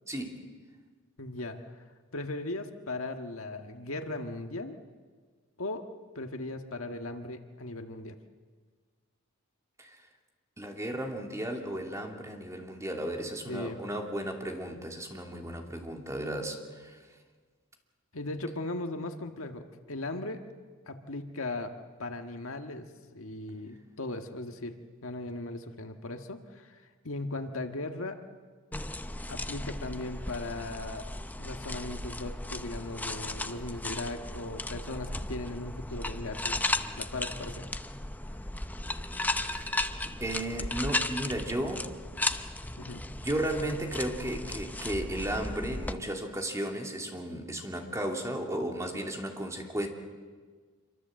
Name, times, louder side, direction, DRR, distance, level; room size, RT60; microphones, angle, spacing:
voice 1, 0.1-0.4 9.8-10.0 10.6-17.0 39.4-39.8 40.0-41.9 43.2-49.9, right 1 dB, 15° right, 2 dB, 2.8 m, -34 dB
voice 2, 1.2-1.6 2.1-4.8 5.6-5.8 6.1-8.2 13.5-13.8 18.1-20.4 20.9-21.7 22.0-22.9 23.1-24.8 25.0-28.2 29.3-31.0 31.4-36.7 37.0-37.7 42.8-43.0, left 2 dB, 65° left, 5 dB, 1.6 m, -38 dB
sound 1, 28.7-45.9, left 2 dB, 10° left, 0.7 m, -35 dB
26.5 x 24.5 x 7.7 m, 1.5 s
head